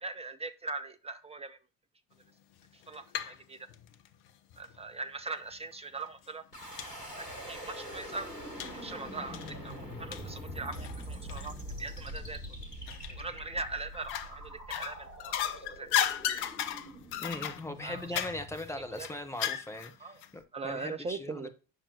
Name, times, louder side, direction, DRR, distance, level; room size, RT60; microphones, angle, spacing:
voice 1, 0.0-1.6 2.7-3.7 4.6-6.4 7.2-8.3 8.7-11.5 11.8-12.4 13.1-15.9 17.8-18.1 18.7-19.1 20.0-20.2 20.5-21.5, right 3 dB, 15° right, 0.3 m, -41 dB
sound 1, 2.6-3.4 3.7-4.8 5.5-5.6 6.1-6.2 6.8-6.9 7.3-7.4 8.6-8.8 9.3-11.6 12.0-12.1 12.9-13.4 13.9-14.3 14.7-19.9 20.2-20.3, left 10 dB, 55° left, 0.8 m, -35 dB
sound 2, 6.5-19.5, equal, 85° left, 1.4 m, -44 dB
voice 2, 17.2-21.5, left 1 dB, 5° left, 1.0 m, -40 dB
8.1 x 5.8 x 2.8 m
figure-of-eight pair, 50°, 46 cm